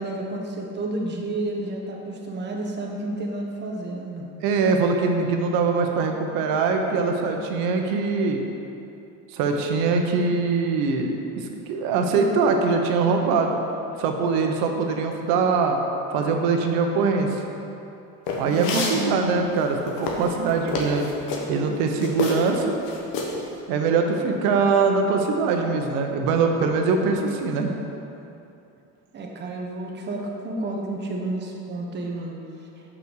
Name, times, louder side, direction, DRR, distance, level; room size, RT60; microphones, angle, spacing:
voice 1, 0.0-4.2 18.5-19.4 29.1-32.4, right 2 dB, 30° right, 0 dB, 1.1 m, -31 dB
voice 2, 4.4-8.4 9.3-13.6 14.0-15.8 16.1-17.4 18.4-21.1 21.5-22.8 23.7-27.7, right 4 dB, 80° right, 3 dB, 1.0 m, -22 dB
sound 1, 18.3-19.0 19.6-21.4 22.0-22.6 22.8-23.4, left 3 dB, 70° left, 1.4 m, -28 dB
5.7 x 5.4 x 6.4 m, 2.8 s
cardioid pair, 135°, 35 cm